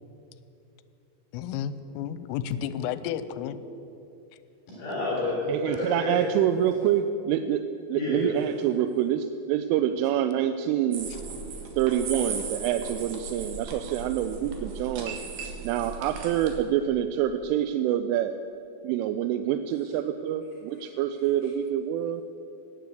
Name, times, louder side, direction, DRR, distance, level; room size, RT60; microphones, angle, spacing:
voice 1, 1.3-3.6, left 9 dB, 90° left, 13 dB, 3.2 m, -32 dB
voice 2, 4.8-5.4 5.7-6.2 7.9-8.4, left 1 dB, 50° left, -6 dB, 5.2 m, -29 dB
voice 3, 5.5-7.6 7.9-11.1 11.8-15.2 15.6-18.4 18.8-22.2, right 10 dB, 85° right, 9 dB, 3.1 m, -26 dB
sound 1, 10.9-16.6, right 5 dB, 60° right, 3.0 m, -37 dB
18.0 x 9.5 x 7.9 m, 2.8 s
omnidirectional pair, 5.7 m